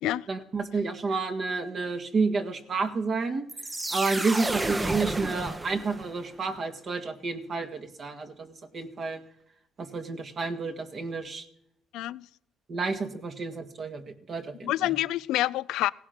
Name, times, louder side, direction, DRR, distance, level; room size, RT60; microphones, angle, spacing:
voice 1, 0.3-3.5 3.9-9.2 9.8-11.4 12.7-14.9, right 4 dB, 45° right, 2.0 m, -30 dB
sound 1, 3.5-6.3, right 2 dB, 15° right, 0.9 m, -31 dB
voice 2, 11.9-12.3 14.6-15.9, left 15 dB, 80° left, 0.4 m, -27 dB
17.0 x 10.5 x 6.0 m
cardioid pair, 115°, 0 cm